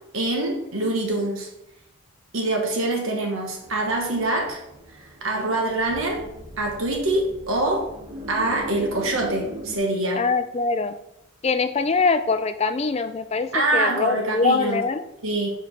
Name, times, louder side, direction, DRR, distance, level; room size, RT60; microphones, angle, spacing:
voice 1, 0.1-1.5 2.3-4.6 5.0-6.3 6.6-7.9 8.3-10.2 13.5-14.8 15.2-15.5, right 2 dB, 75° right, 1 dB, 1.3 m, -24 dB
sound 1, 3.6-9.8, right 1 dB, 30° right, 0.9 m, -40 dB
voice 2, 10.2-11.0 11.4-15.0, left 4 dB, 30° left, 10 dB, 0.4 m, -23 dB
5.0 x 4.4 x 5.6 m, 0.81 s
head